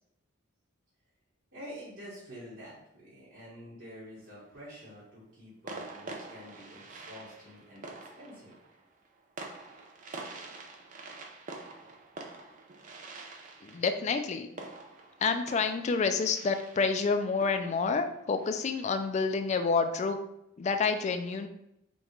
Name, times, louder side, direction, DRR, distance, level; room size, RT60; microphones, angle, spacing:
voice 1, 1.5-8.5, equal, 60° right, -9 dB, 1.3 m, -48 dB
sound 1, 4.2-4.8 5.7-19.1, right 3 dB, 40° right, 0.4 m, -47 dB
voice 2, 13.6-14.5 15.2-20.2 20.6-21.5, left 4 dB, 35° left, 8 dB, 0.3 m, -28 dB
5.2 x 2.4 x 3.0 m, 0.81 s
head